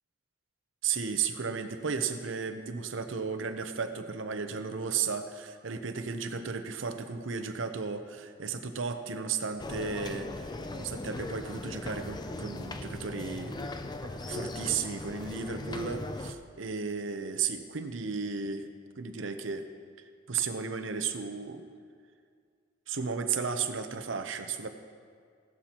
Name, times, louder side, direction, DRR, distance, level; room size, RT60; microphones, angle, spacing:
voice 1, 0.8-13.6 14.0-18.7 19.0-19.6 20.3-21.6 22.9-24.7, right 5 dB, 65° right, 8 dB, 0.8 m, -34 dB
sound 1, 9.6-16.3, left 2 dB, 20° left, 0.4 m, -39 dB
16.0 x 11.5 x 3.0 m, 2.1 s
head